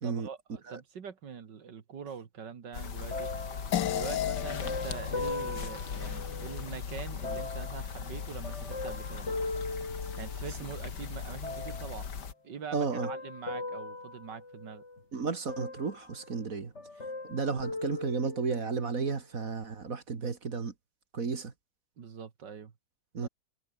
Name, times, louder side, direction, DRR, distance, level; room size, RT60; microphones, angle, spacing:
voice 1, 0.0-3.3 3.9-9.3 10.2-12.1 12.4-14.8 22.0-22.7 23.2-23.3, right 6 dB, 75° right, 2.5 m, -43 dB
sound 1, 2.7-12.3, left 6 dB, 70° left, 2.5 m, -39 dB
sound 2, 3.1-6.7 7.2-10.7 11.4-12.1 12.7-15.0 15.5-16.5 16.7-18.8 19.5-19.6, left 2 dB, 40° left, 4.1 m, -40 dB
sound 3, 3.7-8.4, left 11 dB, 85° left, 1.7 m, -37 dB
voice 2, 12.7-13.1 15.1-16.7 17.2-20.7 21.1-21.5 23.1-23.3, right 5 dB, 50° right, 2.4 m, -33 dB
omnidirectional pair, 1.9 m